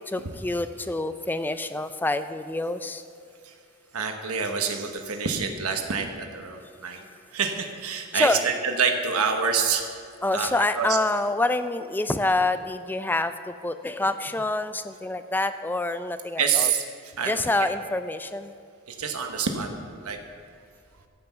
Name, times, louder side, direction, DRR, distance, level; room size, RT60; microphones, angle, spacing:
voice 1, 0.1-3.0 8.1-8.4 10.2-16.7 17.3-18.5, left 2 dB, 10° left, 11 dB, 0.3 m, -27 dB
voice 2, 3.9-7.0 7.3-9.8 10.3-11.0 16.4-16.8 17.2-17.4 18.9-19.7 20.0-20.2, right 6 dB, 90° right, 4 dB, 1.1 m, -27 dB
13.5 x 5.9 x 7.0 m, 2.3 s
head